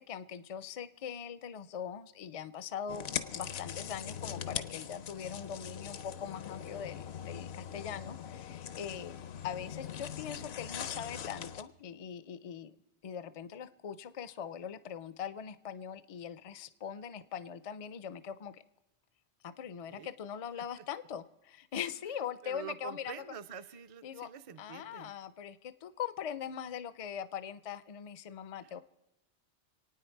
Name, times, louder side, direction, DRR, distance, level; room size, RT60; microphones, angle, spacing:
voice 1, 0.0-3.1 3.3-9.2 9.4-12.7 13.0-18.6 19.4-23.2 24.0-24.3 24.6-28.8, left 8 dB, 45° left, 14 dB, 0.5 m, -41 dB
sound 1, 2.9-11.6, left 8 dB, 70° left, 0.9 m, -41 dB
voice 2, 22.4-25.1 28.6-28.7, right 8 dB, 40° right, 9 dB, 0.5 m, -46 dB
27.0 x 9.2 x 4.6 m, 0.97 s
omnidirectional pair, 1.2 m